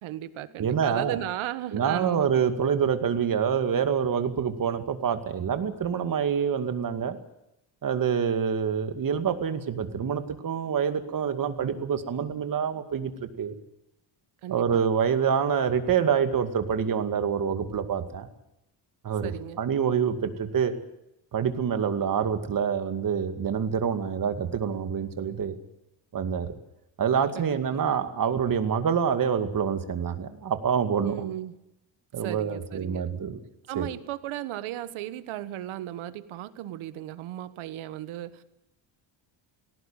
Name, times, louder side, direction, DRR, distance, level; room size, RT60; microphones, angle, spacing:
voice 1, 0.0-2.4 14.4-14.8 19.2-19.6 27.3-27.6 31.0-31.6 32.2-33.1 33.7-38.4, right 13 dB, 85° right, 13 dB, 1.5 m, -35 dB
voice 2, 0.6-1.2 1.7-7.2 7.8-13.6 14.5-18.3 19.0-19.3 19.6-20.7 21.3-25.6 26.1-26.6 27.0-31.1 32.1-33.4 33.8-33.9, right 7 dB, 45° right, 8 dB, 2.3 m, -26 dB
19.0 x 17.5 x 9.0 m, 0.85 s
cardioid pair, 125°, 47 cm